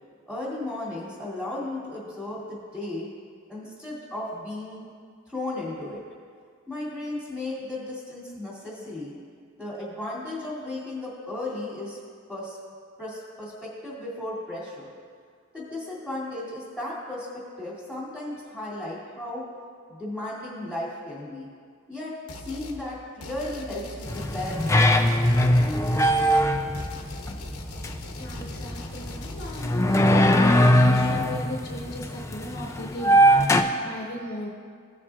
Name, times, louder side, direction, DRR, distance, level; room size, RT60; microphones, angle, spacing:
voice 1, 0.3-3.1 3.5-4.8 5.3-6.0 6.7-9.1 9.6-12.0 12.3-12.6 13.0-14.9 15.5-17.3 17.6-19.4 19.9-21.5 21.9-22.1 22.4-25.1, left 1 dB, 5° right, -8 dB, 2.4 m, -35 dB
sound 1, 22.3-22.8 23.2-29.7, left 1 dB, 80° left, 0.9 m, -41 dB
sound 2, 24.1-33.6, equal, 15° left, 0.3 m, -21 dB
voice 2, 28.1-33.2 33.5-34.5, left 1 dB, 45° left, -3 dB, 1.0 m, -38 dB
17.0 x 7.2 x 2.4 m, 2.1 s
head